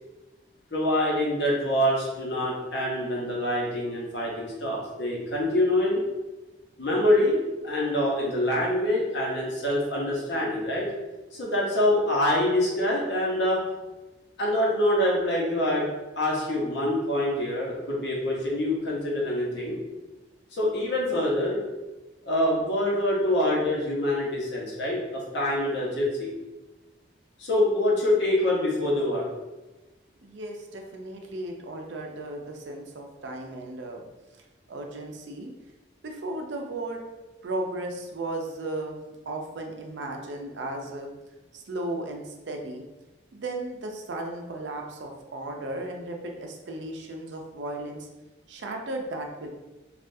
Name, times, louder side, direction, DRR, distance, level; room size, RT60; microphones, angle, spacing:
voice 1, 0.7-6.0 6.8-10.9 11.3-13.6 14.4-15.8 16.1-19.8 20.5-21.6 22.2-26.3 27.4-29.3, left 1 dB, 70° left, -4 dB, 0.9 m, -25 dB
voice 2, 30.2-34.0 34.7-35.5 36.0-37.0 37.4-39.0 39.3-41.1 41.5-42.8 43.3-48.1 48.5-49.5, right 2 dB, 80° right, 2 dB, 0.5 m, -35 dB
3.4 x 2.4 x 2.6 m, 1.1 s
head